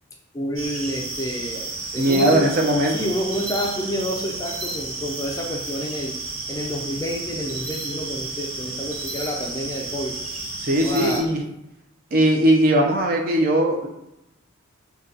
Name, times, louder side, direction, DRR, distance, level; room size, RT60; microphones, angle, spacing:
voice 1, 0.3-2.4 2.9-6.2 6.5-10.1 10.8-11.2, equal, 15° left, 0 dB, 0.3 m, -29 dB
sound 1, 0.6-11.2, right 2 dB, 75° right, 1.2 m, -32 dB
voice 2, 2.0-2.9 10.6-11.4 12.1-13.9, right 1 dB, 45° right, 0 dB, 0.5 m, -19 dB
2.7 x 2.3 x 3.7 m, 0.88 s
head